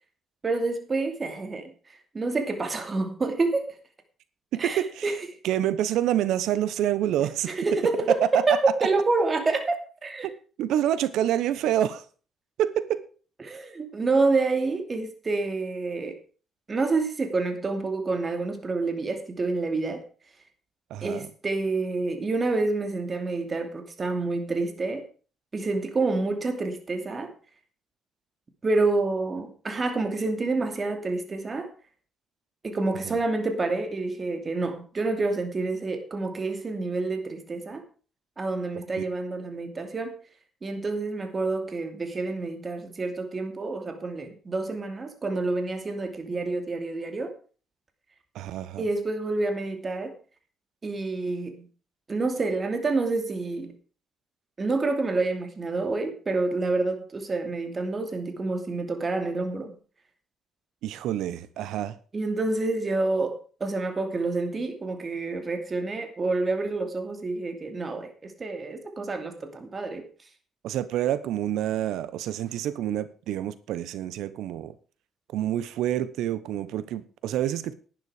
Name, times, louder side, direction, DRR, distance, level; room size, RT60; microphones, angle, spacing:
voice 1, 0.4-1.7 2.1-3.7 4.6-5.1 7.5-10.3 13.4-16.2 16.7-20.0 21.0-25.0 25.5-27.3 28.6-31.7 32.6-37.8 38.4-40.2 40.6-47.3 48.8-50.1 50.8-51.7 52.1-53.7 54.6-59.7 62.1-70.1, right 3 dB, 35° right, 2.7 m, -28 dB
voice 2, 4.5-5.2 5.4-7.5 10.2-10.3 10.6-12.0 12.6-13.0 20.9-21.3 33.1-33.2 48.3-48.8 60.8-62.0 70.6-74.8 75.3-77.7, right 11 dB, 85° right, 1.0 m, -27 dB
11.5 x 9.6 x 5.0 m
cardioid pair, 90°, 0 cm